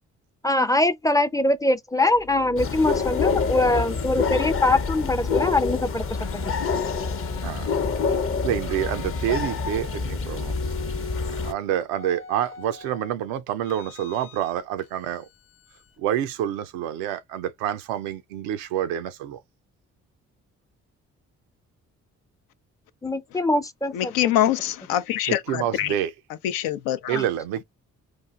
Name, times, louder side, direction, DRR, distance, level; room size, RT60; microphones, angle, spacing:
voice 1, 0.4-6.0 6.3-6.5 23.0-24.3 27.1-27.2, left 2 dB, 10° left, 0.4 m, -23 dB
sound 1, 2.1-5.7 6.1-8.2 8.7-10.0 10.3-11.6 11.9-13.1 13.6-14.5 14.8-16.0, left 5 dB, 65° left, 0.9 m, -41 dB
sound 2, 2.6-11.5, left 5 dB, 40° left, 0.7 m, -27 dB
voice 2, 8.4-10.6 11.3-15.3 16.0-19.4 25.3-26.1 27.1-27.6, right 11 dB, 90° right, 0.5 m, -28 dB
voice 3, 23.9-25.9 26.4-27.2, left 12 dB, 85° left, 0.5 m, -24 dB
4.1 x 2.4 x 2.3 m
supercardioid pair, 50°, 34 cm